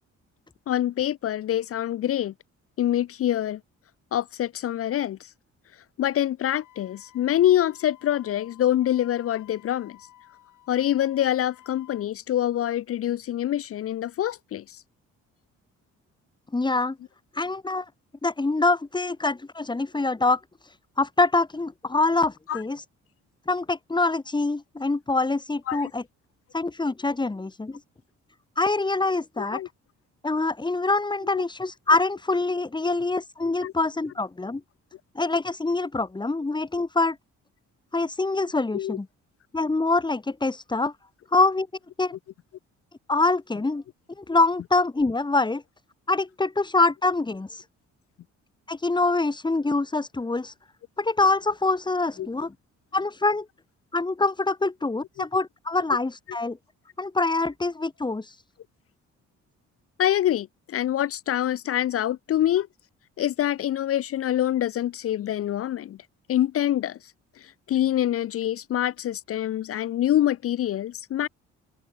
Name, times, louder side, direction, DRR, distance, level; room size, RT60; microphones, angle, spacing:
voice 1, 0.7-2.3 2.8-3.6 4.1-5.3 6.0-10.0 10.7-14.8 22.5-22.6 25.7-25.9 29.4-29.7 31.3-31.4 32.8-33.0 33.6-33.7 38.7-39.0 52.2-52.3 60.0-62.7 63.2-66.0 66.3-67.0 67.4-71.3, left 12 dB, 50° left, 0.5 m, -25 dB
Wind instrument woodwind instrument, 6.4-12.1, left 13 dB, 80° left, 6.5 m, -54 dB
voice 2, 16.5-17.0 17.3-17.9 18.2-22.8 23.5-26.0 26.5-27.8 28.6-29.6 30.2-34.6 35.1-37.2 37.9-39.1 39.5-40.9 41.3-41.7 42.0-42.1 43.1-43.8 44.2-45.6 46.1-47.6 48.7-50.5 51.0-52.5 52.9-53.4 53.9-56.6 57.0-58.4, left 3 dB, 15° left, 1.3 m, -25 dB
open air
cardioid pair, 90°, 30 cm